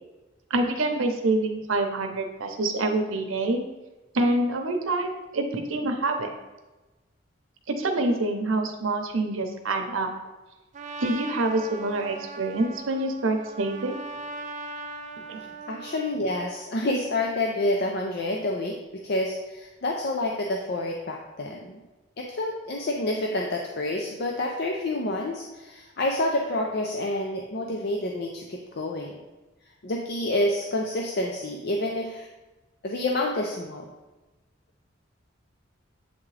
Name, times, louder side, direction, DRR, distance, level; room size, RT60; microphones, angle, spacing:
voice 1, 0.5-3.6 4.1-6.3 7.7-10.1 11.0-13.9 15.3-15.5, right 2 dB, 85° right, 4 dB, 0.8 m, -26 dB
Trumpet, 10.7-16.2, right 3 dB, 35° right, 0.3 m, -39 dB
voice 2, 15.7-21.8 22.2-29.2 29.8-32.3 32.8-33.9, left 1 dB, 55° left, 1 dB, 0.5 m, -28 dB
8.0 x 3.6 x 3.3 m, 1.1 s
head